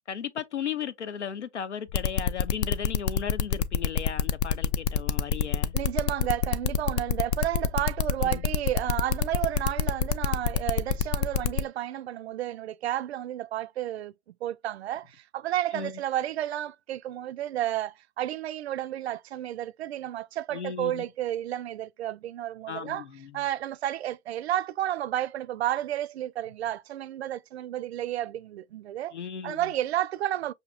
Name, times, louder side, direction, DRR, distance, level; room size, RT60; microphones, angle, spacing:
voice 1, 0.0-5.7 8.2-8.4 15.7-15.9 20.5-21.0 22.7-23.4 29.1-29.7, left 8 dB, 85° left, 0.7 m, -36 dB
sound 1, 1.9-11.6, left 7 dB, 40° left, 0.4 m, -26 dB
voice 2, 5.7-14.1 14.4-23.0 23.3-29.1 29.4-30.5, right 12 dB, 70° right, 0.5 m, -31 dB
5.8 x 2.7 x 2.3 m
figure-of-eight pair, 110°, 34 cm